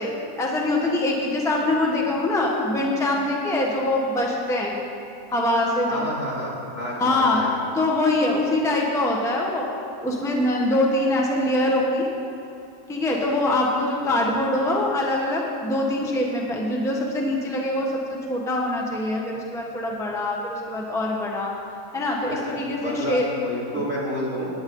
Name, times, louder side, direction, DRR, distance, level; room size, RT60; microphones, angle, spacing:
voice 1, 0.0-4.7 5.3-6.1 7.0-7.4 7.7-9.6 10.0-12.1 12.9-21.5 21.9-23.3, left 1 dB, ahead, -1 dB, 1.1 m, -23 dB
voice 2, 5.9-7.6 14.0-14.1 22.3-22.4 22.8-24.5, equal, 45° left, -6 dB, 3.2 m, -29 dB
18.0 x 9.8 x 3.9 m, 2.9 s
omnidirectional pair, 1.7 m